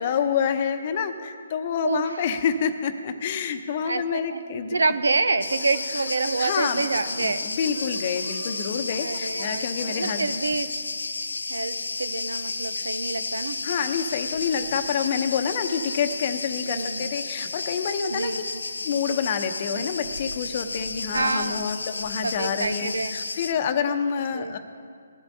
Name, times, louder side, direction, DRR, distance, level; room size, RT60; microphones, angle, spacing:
voice 1, 0.0-4.8 6.4-6.9 7.2-10.3 12.8-12.9 13.6-18.4 18.8-24.6, left 7 dB, 40° left, 8 dB, 0.8 m, -27 dB
voice 2, 3.8-4.4 4.7-7.4 9.0-10.7 11.5-13.6 16.6-17.1 18.1-18.6 21.1-21.8 22.2-23.1 24.3-24.5, right 3 dB, 85° right, 11 dB, 0.7 m, -27 dB
sound 1, 5.3-6.5 6.8-7.4 7.7-8.6 8.9-9.5 9.8-10.2, right 3 dB, 60° right, 2.7 m, -43 dB
Cricket, 5.4-23.5, left 3 dB, 85° left, 0.5 m, -32 dB
19.5 x 12.0 x 2.8 m, 2.2 s
hypercardioid pair, 150°, 0 cm